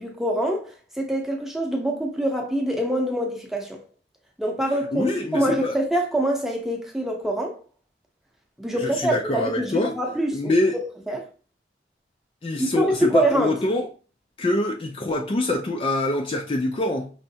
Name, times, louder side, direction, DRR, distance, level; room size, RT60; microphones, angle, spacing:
voice 1, 0.0-3.8 4.4-7.6 8.6-11.2 12.5-13.5, right 1 dB, ahead, 0.7 m, -25 dB
voice 2, 4.9-5.8 8.8-9.9 10.3-10.8 12.4-13.9 14.4-17.1, left 2 dB, 30° left, 0.4 m, -24 dB
5.5 x 3.2 x 2.7 m
head